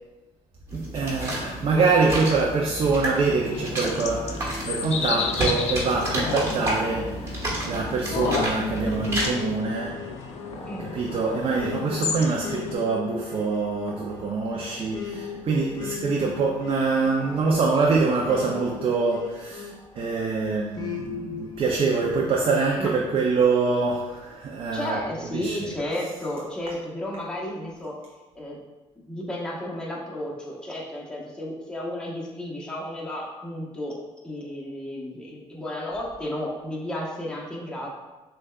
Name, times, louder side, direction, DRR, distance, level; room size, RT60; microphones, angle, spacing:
sound 1, 0.7-9.3, right 1 dB, 25° right, 1.4 m, -31 dB
voice 1, 0.7-10.0 10.9-19.7 20.0-25.0 25.3-25.7, right 4 dB, 50° right, -1 dB, 0.5 m, -25 dB
sound 2, 3.2-12.7, left 6 dB, 60° left, 0.4 m, -32 dB
sound 3, 9.1-20.1 20.8-22.3, left 6 dB, 35° left, 0.7 m, -38 dB
voice 2, 24.7-28.0 28.3-28.6 29.1-33.9 34.2-37.9, left 1 dB, 5° left, -5 dB, 1.0 m, -33 dB
6.1 x 2.3 x 2.3 m, 1.2 s
cardioid pair, 80°, 12 cm